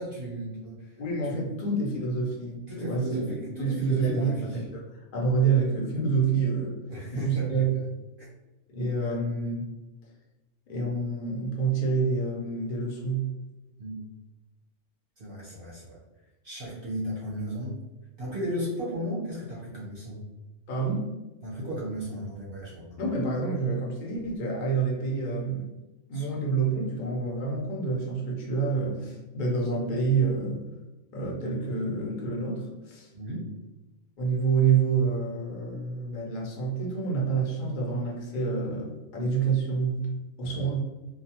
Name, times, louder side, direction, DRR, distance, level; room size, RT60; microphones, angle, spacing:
voice 1, 0.0-1.0 1.2-1.6 2.6-4.6 6.9-7.8 8.2-8.3 13.8-14.0 15.2-16.0 16.4-17.8 18.2-20.2 21.4-23.0 26.1-26.3 33.1-33.5 40.4-40.6, right 1 dB, 50° right, -6 dB, 0.8 m, -35 dB
voice 2, 1.0-3.2 3.6-6.8 7.1-7.7 8.7-9.7 10.7-13.3 20.7-21.1 23.0-25.7 26.1-30.6 31.1-33.1 34.2-40.1 40.4-40.8, right 4 dB, 45° left, -3 dB, 0.7 m, -28 dB
2.3 x 2.3 x 2.8 m, 1.1 s
omnidirectional pair, 1.4 m